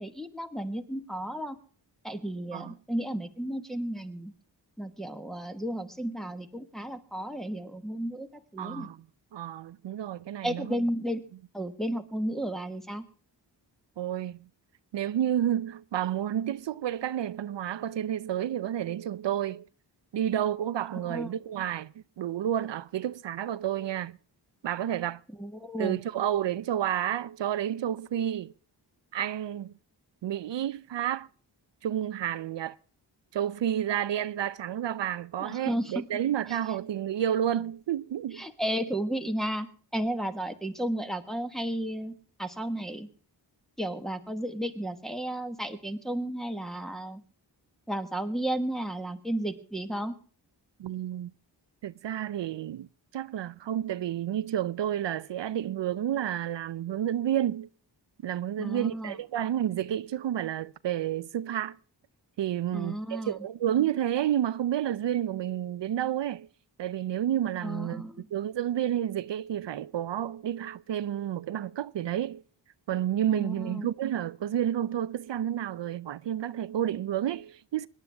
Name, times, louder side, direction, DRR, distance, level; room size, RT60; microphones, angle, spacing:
voice 1, 0.0-1.6 2.0-4.3 4.8-8.9 10.4-11.2 11.5-13.0 21.0-21.3 25.3-26.0 35.4-36.0 36.5-36.6 38.3-39.7 39.9-42.1 42.4-43.1 43.8-47.2 47.9-50.1 58.6-59.2 62.7-63.4 67.6-68.3 73.3-73.9, right 1 dB, ahead, 1.4 m, -33 dB
voice 2, 8.6-9.0 9.3-10.8 14.0-14.5 14.9-19.7 20.1-24.2 24.6-25.2 25.8-28.5 29.1-29.7 30.2-31.3 31.8-32.8 33.3-38.5 50.8-51.3 51.8-52.9 53.1-57.7 58.2-61.8 62.4-66.5 66.8-72.4 72.9-77.9, right 11 dB, 75° right, 0.6 m, -30 dB
25.0 x 11.0 x 3.4 m
wide cardioid pair, 155°, 44 cm